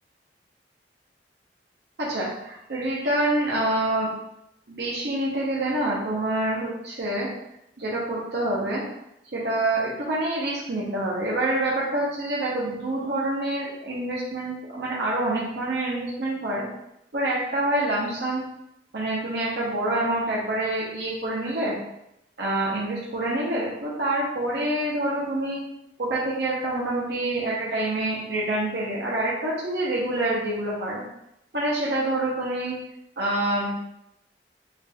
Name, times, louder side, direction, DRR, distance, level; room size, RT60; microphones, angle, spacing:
voice 1, 2.0-4.1 4.7-7.3 7.8-8.8 9.3-16.6 17.1-18.4 18.9-21.8 22.4-25.6 26.0-31.0 31.5-32.7 33.2-33.7, right 1 dB, 65° right, -5 dB, 1.0 m, -26 dB
3.9 x 2.5 x 3.6 m, 0.83 s
head